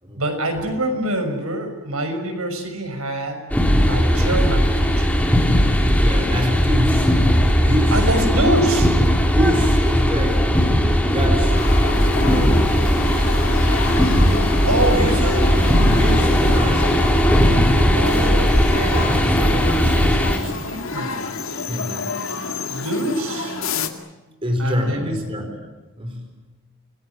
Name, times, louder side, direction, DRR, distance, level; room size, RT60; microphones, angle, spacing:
voice 1, 0.2-3.4 3.9-5.2 7.9-9.0 14.6-15.8 16.4-17.0 17.9-21.2 22.7-23.6 24.6-25.2, right 1 dB, 85° right, 5 dB, 6.4 m, -25 dB
sound 1, 3.5-20.4, equal, 5° left, 3.9 m, -17 dB
voice 2, 6.0-7.3 7.5-8.1 9.3-10.6 11.1-13.2 14.9-15.3 15.9-16.9 21.7-22.2 24.4-25.6 26.0-26.3, equal, 25° right, 4 dB, 4.6 m, -26 dB
sound 2, 11.6-23.9, left 3 dB, 70° left, 2.4 m, -29 dB
28.5 x 20.0 x 9.4 m, 1.1 s
head